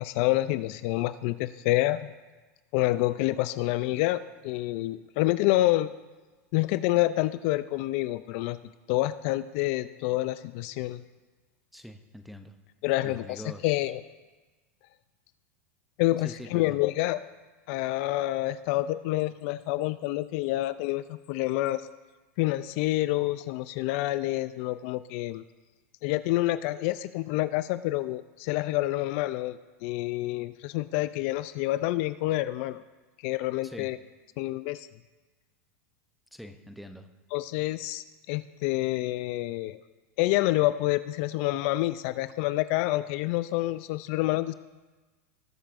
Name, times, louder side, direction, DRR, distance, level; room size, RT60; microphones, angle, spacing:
voice 1, 0.0-2.1 2.7-5.9 6.5-8.6 8.9-11.0 12.8-14.0 16.0-17.2 17.7-21.8 22.4-25.4 26.0-32.8 33.2-34.0 34.4-34.9 37.3-39.8 40.2-44.5, left 17 dB, 55° left, 14 dB, 0.3 m, -28 dB
voice 2, 11.7-12.5 13.0-13.8 16.2-16.8 33.6-33.9 36.3-37.1, equal, ahead, 6 dB, 0.6 m, -44 dB
20.0 x 7.2 x 2.5 m, 1.2 s
supercardioid pair, 125°, 9 cm